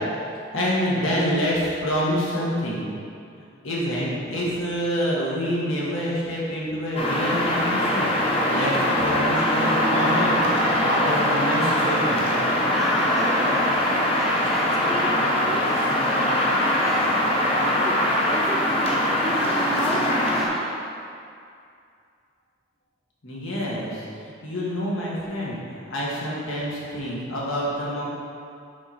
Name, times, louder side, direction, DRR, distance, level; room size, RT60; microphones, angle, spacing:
voice 1, 0.5-2.9 3.4-12.2 23.2-28.1, equal, 85° left, -6 dB, 1.8 m, -27 dB
sound 1, 7.0-20.5, left 1 dB, 30° left, 0.9 m, -22 dB
voice 2, 12.6-20.8, equal, ahead, -4 dB, 0.6 m, -32 dB
7.1 x 5.0 x 4.4 m, 2.4 s
head